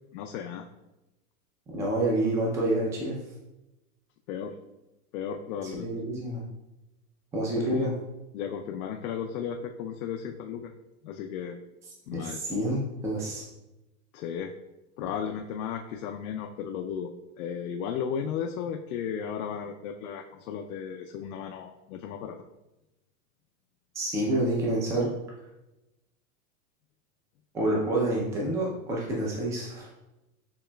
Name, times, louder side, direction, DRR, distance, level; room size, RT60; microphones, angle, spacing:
voice 1, 0.1-0.6 4.3-4.5 5.1-5.9 7.6-7.9 8.3-10.7 11.0-11.6 12.1-12.4 14.1-14.5 15.0-17.1 17.4-22.4, left 7 dB, 75° left, 2 dB, 0.6 m, -35 dB
voice 2, 1.7-3.2 5.7-6.4 7.3-7.9 12.1-13.4 24.0-25.1 27.5-29.9, right 1 dB, 5° right, -3 dB, 0.4 m, -28 dB
6.9 x 3.0 x 2.2 m, 0.95 s
supercardioid pair, 150°, 44 cm